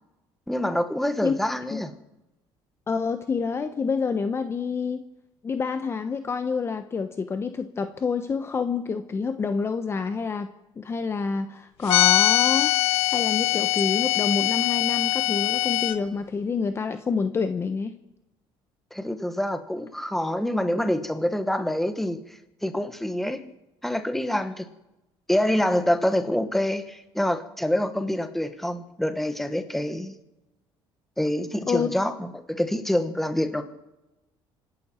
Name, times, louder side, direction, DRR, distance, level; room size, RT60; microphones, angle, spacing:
voice 1, 0.5-1.9 18.9-22.2 22.6-23.4 23.8-24.7 25.3-30.2 31.2-33.6, left 1 dB, 5° left, 8 dB, 1.4 m, -26 dB
voice 2, 2.9-5.0 5.4-10.5 10.8-12.7 13.1-17.9 31.7-31.9, left 5 dB, 25° left, 8 dB, 0.9 m, -27 dB
sound 1, 11.9-15.9, left 16 dB, 90° left, 1.1 m, -22 dB
26.0 x 11.5 x 4.4 m, 0.95 s
cardioid pair, 135°, 10 cm